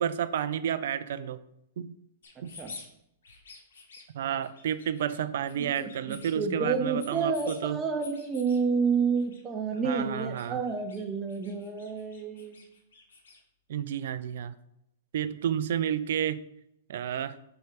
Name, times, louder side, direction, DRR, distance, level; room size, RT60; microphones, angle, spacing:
voice 1, 0.0-1.4 1.8-1.9 2.4-2.5 4.1-7.8 9.8-10.6 13.7-14.5 15.1-16.4 16.9-17.3, right 9 dB, 65° right, 12 dB, 0.4 m, -31 dB
sound 1, 2.2-2.9 3.2-4.0 4.4-5.2 5.4-6.3 6.7-7.6 8.0-8.6 9.1-9.4 9.7-11.0 11.3-13.4, left 4 dB, 75° left, 1.8 m, -49 dB
voice 2, 5.8-12.6, right 5 dB, 20° right, 4 dB, 1.1 m, -29 dB
4.7 x 4.2 x 5.2 m, 0.78 s
hypercardioid pair, 115°, 0 cm